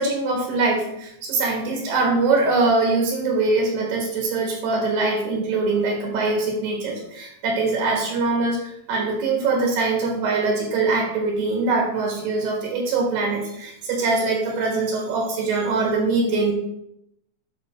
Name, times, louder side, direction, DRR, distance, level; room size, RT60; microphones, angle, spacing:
voice 1, 0.0-8.6 8.9-16.5, right 3 dB, 75° right, 0 dB, 3.8 m, -23 dB
11.5 x 6.1 x 3.8 m, 0.78 s
omnidirectional pair, 4.8 m